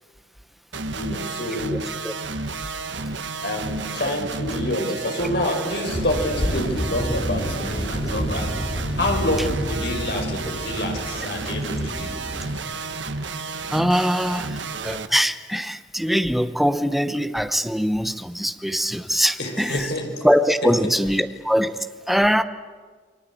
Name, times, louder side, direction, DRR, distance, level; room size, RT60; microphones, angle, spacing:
sound 1, 0.7-15.1, right 3 dB, 75° right, 1.3 m, -31 dB
voice 1, 0.9-1.8 3.4-8.5 9.0-12.1 19.4-20.1 20.6-20.9, left 1 dB, 60° left, 2 dB, 5.2 m, -27 dB
Thunder, 5.9-12.6, equal, 30° left, 2.5 m, -29 dB
voice 2, 13.7-19.9 20.2-21.8 22.1-22.4, equal, ahead, 10 dB, 0.9 m, -22 dB
29.0 x 22.5 x 8.5 m, 1.5 s
head